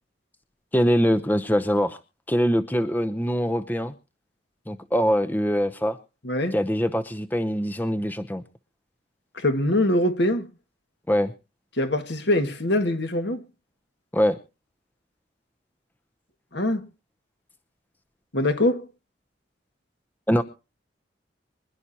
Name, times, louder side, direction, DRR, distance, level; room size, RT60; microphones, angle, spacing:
voice 1, 0.7-2.0 2.3-3.9 4.7-6.0 6.5-8.4 11.1-11.3 14.1-14.4 20.3-20.4, equal, 10° left, 0.7 m, -23 dB
voice 2, 6.2-6.6 9.4-10.5 11.8-13.4 16.5-16.9 18.3-18.9, left 1 dB, 60° left, 1.9 m, -23 dB
25.5 x 11.5 x 2.9 m
head